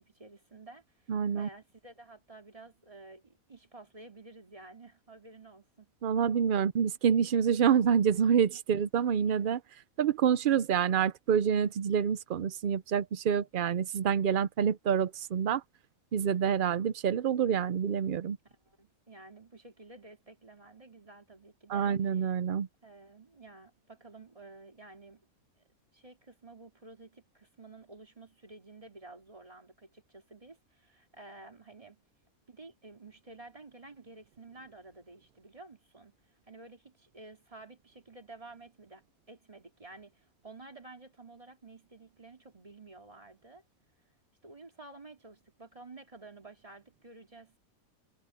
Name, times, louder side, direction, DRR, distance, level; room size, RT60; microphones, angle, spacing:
voice 1, 0.0-6.3 18.4-22.2 22.8-25.3 25.9-32.0 32.5-36.2 36.5-43.6 44.4-47.6, right 3 dB, 25° right, 2.8 m, -52 dB
voice 2, 1.1-1.5 6.0-15.6 16.1-18.4 21.7-22.7, right 8 dB, 65° right, 0.5 m, -27 dB
omnidirectional pair, 1.5 m